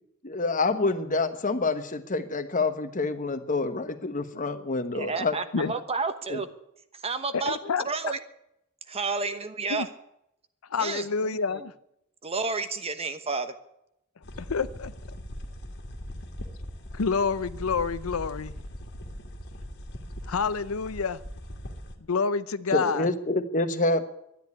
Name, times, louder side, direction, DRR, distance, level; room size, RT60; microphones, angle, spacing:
voice 1, 0.2-5.4 6.3-6.4 22.7-24.0, left 3 dB, 40° left, 10 dB, 1.2 m, -27 dB
voice 2, 4.9-6.5 6.9-8.2 8.9-9.9 10.8-11.6 12.2-13.5, right 4 dB, 30° right, 10 dB, 1.1 m, -31 dB
voice 3, 7.3-7.8 9.7-9.9 10.7-11.7 14.4-14.9 16.9-18.5 20.3-21.2 22.1-23.1, left 5 dB, 80° left, 15 dB, 0.6 m, -28 dB
sound 1, 14.2-22.0, equal, 55° left, 2.1 m, -40 dB
12.5 x 10.5 x 9.5 m, 0.80 s
head